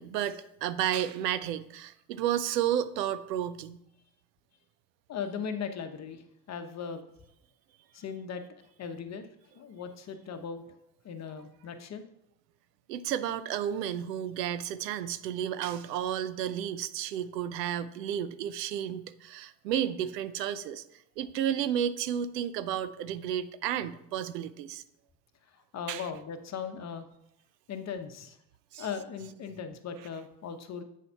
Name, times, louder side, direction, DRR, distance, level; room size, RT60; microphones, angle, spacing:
voice 1, 0.0-3.8 12.9-20.8 21.2-24.8 25.9-26.0 28.7-28.9, right 10 dB, 85° right, 13 dB, 0.7 m, -32 dB
voice 2, 5.1-7.0 7.9-9.3 9.5-10.6 11.0-12.0 25.5-27.1 27.7-28.4 28.8-30.8, left 6 dB, 35° left, 8 dB, 1.0 m, -38 dB
8.3 x 4.0 x 5.6 m, 0.78 s
hypercardioid pair, 90°, 48 cm